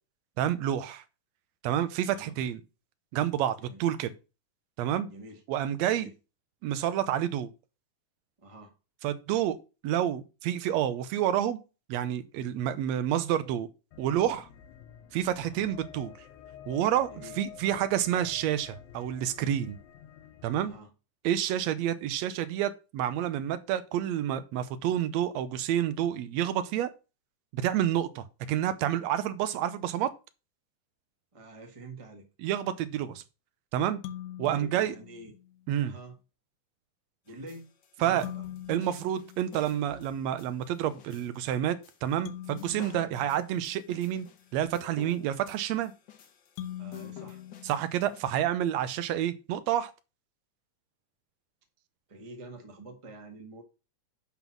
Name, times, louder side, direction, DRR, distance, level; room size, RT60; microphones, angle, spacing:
voice 1, 0.4-1.0 1.6-2.6 3.1-4.1 4.8-5.1 5.5-6.1 6.6-7.5 9.0-9.6 9.8-11.6 11.9-13.7 14.0-14.5 15.1-16.1 16.7-19.8 20.4-20.7 21.2-26.9 27.5-30.1 32.4-33.2 33.7-34.0 34.4-35.0 35.7-35.9 38.0-38.3 38.7-44.3 44.5-45.9 47.6-49.9, right 11 dB, 75° right, 1.9 m, -29 dB
voice 2, 5.1-5.4 5.8-6.1 8.4-8.7 15.4-15.7 17.1-17.4 20.6-20.9 31.3-32.2 34.4-35.3 35.8-36.1 37.2-37.7 38.0-38.5 46.8-47.4 52.1-53.6, right 2 dB, 15° right, 1.0 m, -46 dB
sound 1, 13.9-20.8, left 9 dB, 85° left, 2.3 m, -49 dB
sound 2, 34.0-35.7 38.2-40.2 42.3-44.4 46.6-48.6, left 11 dB, 70° left, 2.0 m, -44 dB
sound 3, 37.3-48.2, left 10 dB, 55° left, 1.3 m, -51 dB
11.0 x 3.9 x 6.0 m
omnidirectional pair, 3.3 m